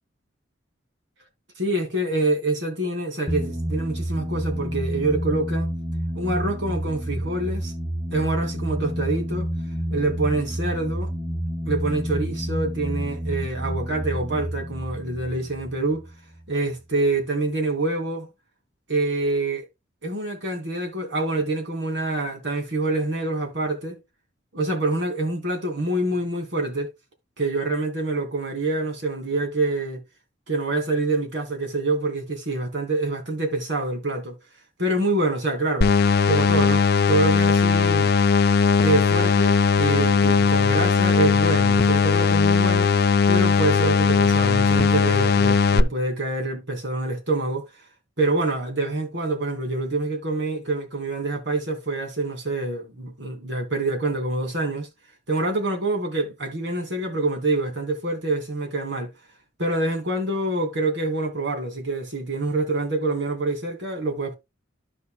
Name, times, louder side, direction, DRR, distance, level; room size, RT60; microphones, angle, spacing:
voice 1, 1.6-5.7 6.1-7.7 8.1-9.5 9.9-11.1 11.7-16.0 16.5-18.3 18.9-19.7 20.0-24.0 24.5-26.9 27.4-30.0 30.5-34.3 34.8-35.9 36.3-36.8 37.1-38.1 38.8-42.9 43.3-47.6 48.2-54.9 55.3-59.1 59.6-64.3, right 2 dB, 65° right, 2.6 m, -26 dB
sound 1, 3.3-16.5, equal, 5° right, 2.3 m, -29 dB
sound 2, 35.8-45.8, left 5 dB, 55° left, 0.5 m, -18 dB
12.5 x 5.5 x 2.3 m
head